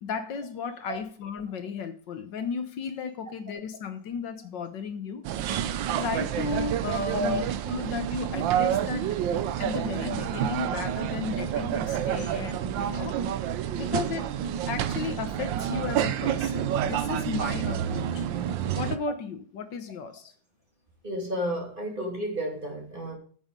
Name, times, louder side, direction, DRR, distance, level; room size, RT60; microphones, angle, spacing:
voice 1, 0.0-5.2 6.0-9.2 9.6-13.2 13.8-14.3 14.7-18.2 18.7-20.3, left 5 dB, 70° left, 1.7 m, -34 dB
sound 1, 5.2-19.0, right 10 dB, 80° right, 1.4 m, -29 dB
voice 2, 7.1-7.4 21.0-23.1, equal, 25° right, 2.8 m, -31 dB
9.0 x 7.0 x 5.3 m
omnidirectional pair, 2.1 m